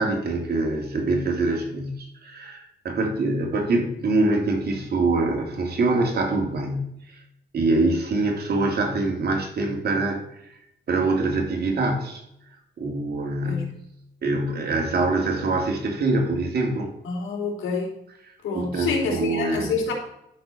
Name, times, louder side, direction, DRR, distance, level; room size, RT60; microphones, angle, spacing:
voice 1, 0.0-7.2 7.5-10.2 10.9-12.2 12.8-13.8 14.2-16.9 18.5-19.8, right 2 dB, 55° right, 2 dB, 3.0 m, -24 dB
voice 2, 17.0-17.9 18.4-19.9, left 4 dB, 80° left, 1 dB, 3.3 m, -27 dB
12.0 x 4.8 x 6.9 m, 0.80 s
cardioid pair, 90°, 20 cm